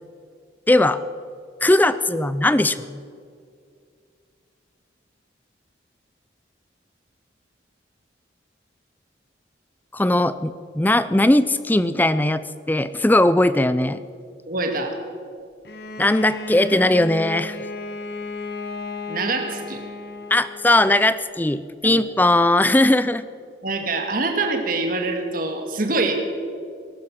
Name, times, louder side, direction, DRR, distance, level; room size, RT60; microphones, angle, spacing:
voice 1, 0.7-1.0 1.6-3.0 9.9-14.0 16.0-17.6 20.3-23.2, left 1 dB, 10° left, 14 dB, 0.4 m, -19 dB
voice 2, 14.5-15.0 19.1-19.8 21.8-22.0 23.6-26.1, right 3 dB, 50° right, 5 dB, 1.9 m, -25 dB
Bowed string instrument, 15.6-20.8, left 3 dB, 55° left, 1.1 m, -34 dB
19.0 x 11.5 x 6.2 m, 2.3 s
head